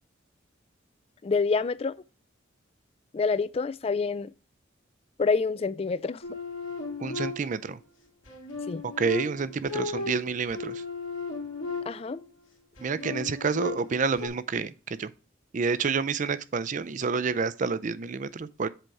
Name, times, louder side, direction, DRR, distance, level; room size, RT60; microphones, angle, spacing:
voice 1, 1.2-1.9 3.1-4.3 5.2-6.2 8.7-8.8 11.9-12.2, left 4 dB, 30° left, 0.3 m, -27 dB
sound 1, 6.2-7.7 8.3-12.3 12.8-14.3, left 3 dB, 80° left, 2.0 m, -36 dB
voice 2, 7.0-7.8 8.8-10.8 12.8-15.1 15.5-18.7, right 5 dB, 40° right, 0.4 m, -29 dB
7.7 x 4.5 x 4.7 m
head